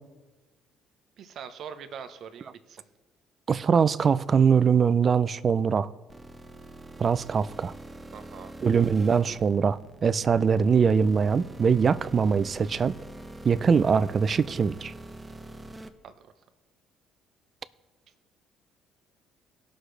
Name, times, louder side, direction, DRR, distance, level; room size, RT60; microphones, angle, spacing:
voice 1, 1.2-2.8 8.1-8.5 16.0-16.3, right 7 dB, 60° right, 0.9 m, -42 dB
voice 2, 3.5-5.9 7.0-7.7 8.6-12.9 13.4-14.9, right 6 dB, 40° right, 0.5 m, -22 dB
sound 1, 6.1-15.9, right 1 dB, 15° right, 0.9 m, -44 dB
18.5 x 6.4 x 3.3 m
supercardioid pair, 75°, 0 cm